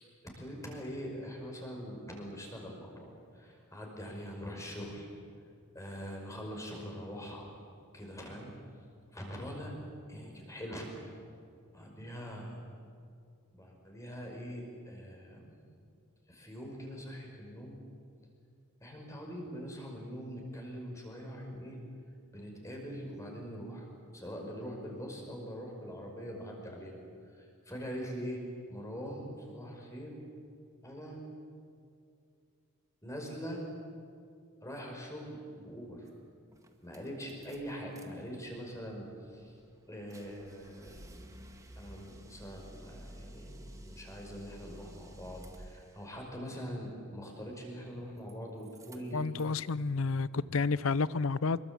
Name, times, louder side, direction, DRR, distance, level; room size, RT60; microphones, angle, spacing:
voice 1, 0.0-5.1 5.7-7.5 7.9-8.5 9.1-9.7 10.1-10.9 11.7-12.6 13.5-15.6 16.3-17.8 18.8-21.8 22.3-23.9 24.1-26.9 27.2-28.4 28.7-30.1 30.8-31.2 33.0-33.6 34.6-36.1 36.8-39.6 39.9-41.4 41.8-49.4 50.1-50.6, equal, 15° left, 0 dB, 5.3 m, -43 dB
sound 1, 36.1-36.2 36.5-38.1 38.4-46.1 47.6-48.3 48.6-49.6, right 1 dB, 15° right, 1.9 m, -52 dB
voice 2, 49.1-51.6, left 4 dB, 65° left, 19 dB, 0.6 m, -30 dB
25.5 x 22.5 x 8.4 m, 2.4 s
head